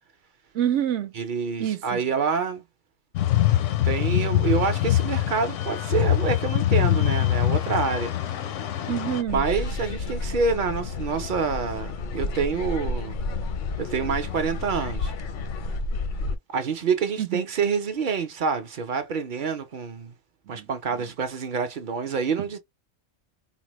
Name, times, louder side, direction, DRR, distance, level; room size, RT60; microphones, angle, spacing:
voice 1, 0.5-1.1 1.6-2.0 8.9-9.4 17.2-17.4 20.5-20.7, right 10 dB, 75° right, 0.9 m, -27 dB
voice 2, 1.1-2.6 3.8-8.1 9.3-13.2 13.8-15.1 16.5-20.1 20.5-22.6, right 5 dB, 55° right, 0.6 m, -27 dB
sound 1, 3.2-9.2, left 13 dB, 85° left, 0.9 m, -23 dB
sound 2, 9.3-16.4, left 3 dB, 60° left, 0.5 m, -31 dB
4.0 x 2.0 x 3.0 m
omnidirectional pair, 1.2 m